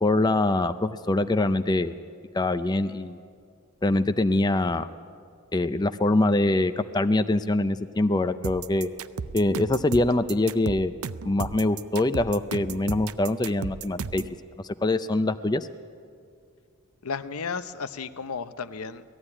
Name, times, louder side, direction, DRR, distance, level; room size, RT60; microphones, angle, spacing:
voice 1, 0.0-1.9 2.3-3.2 3.8-4.9 5.5-8.9 9.3-10.9 11.3-14.2 14.8-15.7, left 2 dB, 20° left, 10 dB, 0.5 m, -24 dB
sound 1, 8.4-14.3, right 5 dB, 80° right, 0.5 m, -34 dB
voice 2, 17.0-19.0, left 5 dB, 90° left, 12 dB, 0.7 m, -33 dB
18.0 x 14.5 x 9.9 m, 2.3 s
head